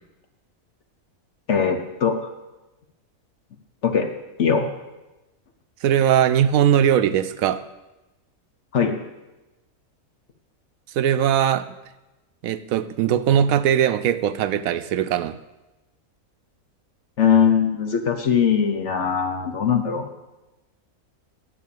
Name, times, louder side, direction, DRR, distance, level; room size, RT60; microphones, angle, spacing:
voice 1, 1.5-2.3 3.8-4.1 4.4-4.7 8.7-9.0 17.2-20.1, left 7 dB, 60° left, 6 dB, 1.2 m, -20 dB
voice 2, 5.8-7.6 11.0-11.7 12.4-15.4, right 9 dB, 80° right, 12 dB, 1.0 m, -20 dB
9.7 x 7.1 x 8.5 m, 1.0 s
omnidirectional pair, 1.5 m